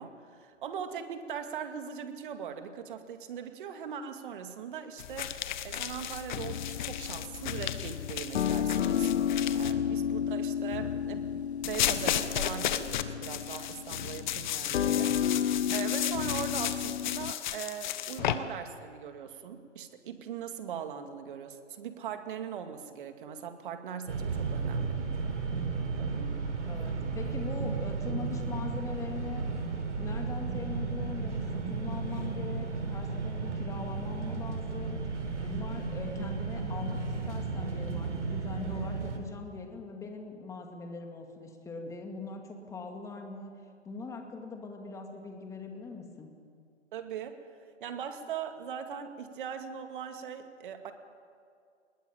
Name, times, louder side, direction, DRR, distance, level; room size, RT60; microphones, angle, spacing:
voice 1, 0.0-5.3 5.6-15.2 15.7-25.0 25.9-26.6 46.9-47.5 47.8-50.9, right 7 dB, 45° right, 7 dB, 2.4 m, -40 dB
sound 1, 5.0-9.7 11.6-18.4, left 11 dB, 40° left, 1.3 m, -34 dB
sound 2, 6.3-17.3, left 8 dB, 65° left, 0.7 m, -32 dB
sound 3, 24.1-39.2, right 4 dB, 75° right, 4.2 m, -34 dB
voice 2, 26.7-29.4 30.0-35.0 35.4-37.0 37.3-43.5 43.8-46.3, left 4 dB, 10° left, 3 dB, 2.3 m, -41 dB
22.0 x 20.5 x 8.9 m, 2.2 s
hypercardioid pair, 140°, 36 cm